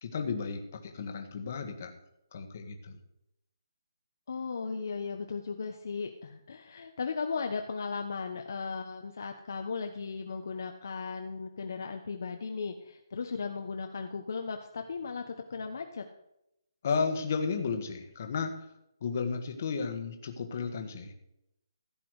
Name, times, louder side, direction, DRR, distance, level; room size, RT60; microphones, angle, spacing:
voice 1, 0.0-1.9 2.3-3.0 16.8-18.5 19.0-21.1, left 5 dB, 30° left, 6 dB, 1.6 m, -33 dB
voice 2, 4.3-16.0, left 5 dB, 50° left, 4 dB, 1.1 m, -36 dB
15.5 x 8.5 x 4.8 m, 0.82 s
hypercardioid pair, 175°, 2 cm